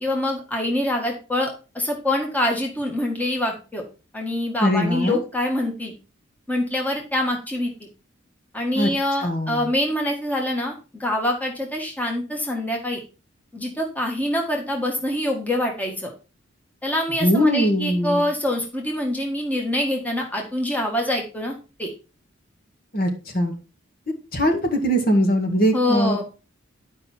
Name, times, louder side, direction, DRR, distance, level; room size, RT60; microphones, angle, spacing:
voice 1, 0.0-3.8 4.1-5.9 6.5-7.7 8.5-13.0 13.5-16.1 16.8-21.9 25.7-26.2, left 1 dB, 10° left, 1 dB, 1.6 m, -25 dB
voice 2, 4.6-5.2 8.8-8.9 9.2-9.6 17.2-18.2 22.9-23.5 24.3-26.2, equal, 50° left, 3 dB, 2.0 m, -21 dB
10.5 x 5.5 x 4.4 m, 0.33 s
head